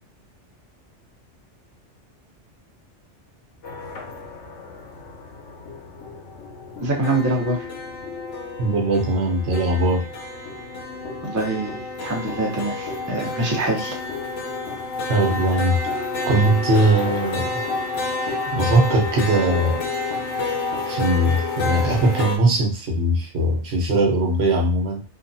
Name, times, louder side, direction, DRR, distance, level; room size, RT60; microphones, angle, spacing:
sound 1, 3.6-22.4, left 3 dB, 75° left, 1.0 m, -30 dB
voice 1, 6.8-7.7 11.2-14.0, right 2 dB, 20° right, -2 dB, 0.5 m, -24 dB
voice 2, 8.6-10.0 15.1-15.8 16.2-17.5 18.5-19.8 20.9-25.0, right 1 dB, 65° right, -1 dB, 1.0 m, -20 dB
2.8 x 2.3 x 2.6 m, 0.33 s
omnidirectional pair, 1.2 m